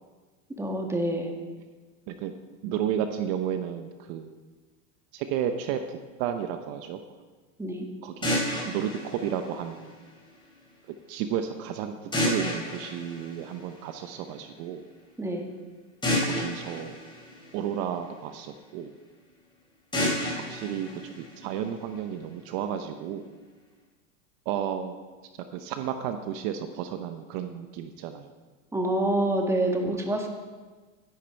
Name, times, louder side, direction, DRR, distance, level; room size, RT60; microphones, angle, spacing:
voice 1, 0.6-1.3 7.6-7.9 15.2-15.4 28.7-30.3, right 1 dB, 5° right, 2 dB, 1.5 m, -27 dB
voice 2, 2.6-4.4 5.1-7.0 8.0-8.4 8.6-9.9 11.1-14.9 16.2-17.0 17.5-18.9 20.2-23.2 24.5-25.0 25.5-28.3 29.7-30.0, right 9 dB, 55° right, 8 dB, 0.9 m, -32 dB
sound 1, 8.2-10.2 12.1-14.1 16.0-18.2 19.9-21.9, left 1 dB, 10° left, 3.9 m, -31 dB
12.0 x 11.0 x 4.6 m, 1.3 s
supercardioid pair, 130°, 40 cm